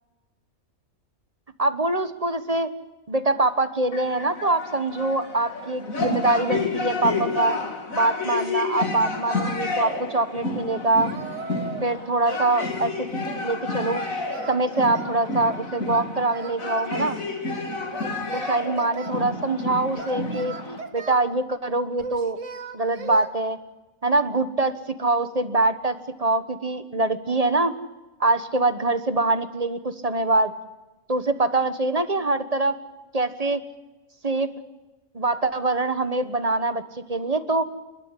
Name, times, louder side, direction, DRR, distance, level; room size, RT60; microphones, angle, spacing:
voice 1, 1.6-2.7 3.1-7.6 7.9-11.1 11.8-13.1 13.4-14.0 14.5-17.2 18.3-22.4 22.7-23.6 24.0-27.7 28.2-30.5 31.1-32.7 33.1-33.6 34.2-34.5 35.1-36.8 37.1-37.6, right 2 dB, 30° right, 11 dB, 1.3 m, -24 dB
sound 1, 3.9-20.8, left 3 dB, 85° left, 3.0 m, -30 dB
Singing, 11.0-12.0 12.3-13.5 13.9-15.2 15.9-17.2 17.9-19.1 20.0-21.3 22.0-23.3, right 4 dB, 65° right, 1.9 m, -38 dB
29.0 x 13.0 x 9.8 m, 1.1 s
omnidirectional pair, 1.4 m